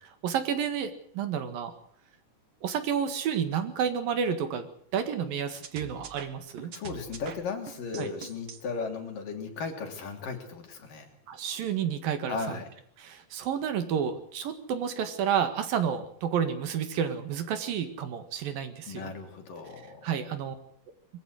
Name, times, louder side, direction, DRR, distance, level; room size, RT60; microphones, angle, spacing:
voice 1, 0.2-1.7 2.6-6.7 8.0-8.1 11.3-12.4 13.0-19.1 20.0-20.6, right 8 dB, 75° right, 9 dB, 3.6 m, -30 dB
sound 1, 5.6-8.6, right 6 dB, 50° right, 2.1 m, -43 dB
voice 2, 6.7-11.1 12.3-12.7 18.9-20.0, left 4 dB, 70° left, 3 dB, 4.9 m, -36 dB
23.0 x 15.0 x 7.9 m, 0.63 s
omnidirectional pair, 4.1 m